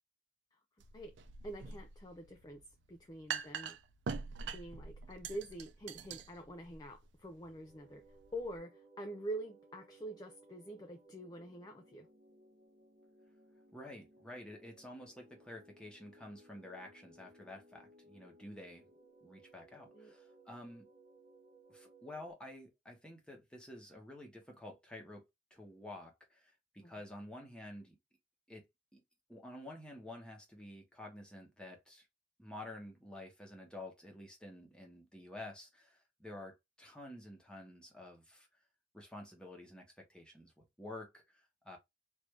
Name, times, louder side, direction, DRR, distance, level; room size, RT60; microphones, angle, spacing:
sound 1, 0.8-8.6, right 6 dB, 85° right, 0.5 m, -45 dB
voice 1, 1.4-3.8 4.5-8.0 8.3-12.1 19.9-20.1 26.8-26.9, right 1 dB, 20° left, 0.4 m, -46 dB
sound 2, 7.3-22.3, right 2 dB, 35° right, 0.9 m, -62 dB
voice 2, 13.7-18.9 19.2-20.9 21.7-25.2 25.5-28.0 28.5-28.6 28.9-29.0 29.3-32.1 32.4-38.5 38.9-41.8, left 1 dB, 5° left, 1.0 m, -50 dB
3.3 x 2.6 x 3.2 m
head